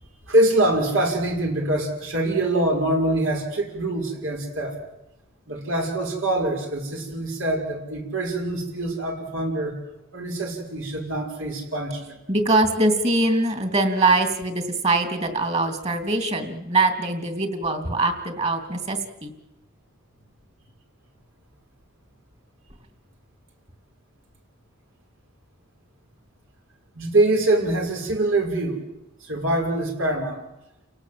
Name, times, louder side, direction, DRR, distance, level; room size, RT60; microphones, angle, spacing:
voice 1, 0.3-4.8 5.5-9.7 10.1-12.2 26.9-28.8 29.2-30.4, right 1 dB, 75° right, 1 dB, 6.0 m, -24 dB
voice 2, 12.3-19.3, right 2 dB, 30° right, 7 dB, 3.0 m, -22 dB
30.0 x 18.0 x 7.8 m, 0.92 s
head